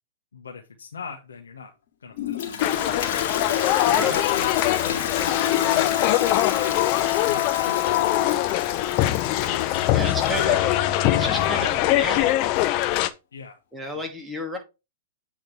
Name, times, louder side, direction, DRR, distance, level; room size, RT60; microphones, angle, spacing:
voice 1, 0.3-1.7 2.0-3.0 3.9-5.1 5.5-6.2 6.9-8.3 9.4-10.5 11.0-11.8 12.1-12.3 13.3-13.6 13.9-14.1, left 5 dB, 90° left, 1 dB, 1.2 m, -40 dB
Toilet flush, 2.1-10.7, left 8 dB, 60° left, 2.0 m, -30 dB
sound 1, 2.6-13.1, left 15 dB, 45° left, 0.6 m, -22 dB
voice 2, 3.9-4.2 9.9-10.7 11.1-12.6 13.7-14.6, right 1 dB, 5° right, 1 dB, 2.4 m, -31 dB
8.3 x 3.8 x 4.6 m, 0.27 s
hypercardioid pair, 120°, 0 cm